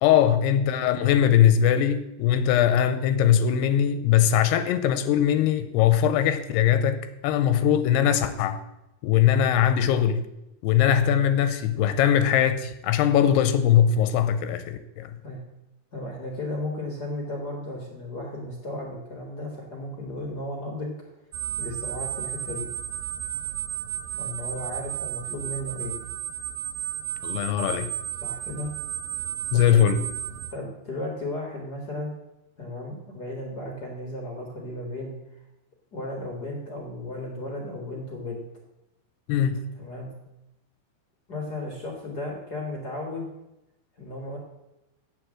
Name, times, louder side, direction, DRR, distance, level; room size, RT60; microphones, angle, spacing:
voice 1, 0.0-7.0 7.2-8.6 9.0-10.3 10.6-15.1 27.2-27.9 29.5-30.0 39.3-39.6, left 9 dB, 85° left, 11 dB, 2.6 m, -21 dB
voice 2, 15.9-20.9 21.6-22.7 24.2-25.9 28.2-28.7 29.5-29.9 30.5-32.1 32.6-35.1 35.9-38.4 39.8-40.1 41.3-43.3 44.0-44.4, left 1 dB, 55° left, 0 dB, 1.0 m, -34 dB
sound 1, 21.3-30.5, right 12 dB, 80° right, 2.8 m, -33 dB
8.3 x 8.0 x 7.6 m, 0.93 s
omnidirectional pair, 4.8 m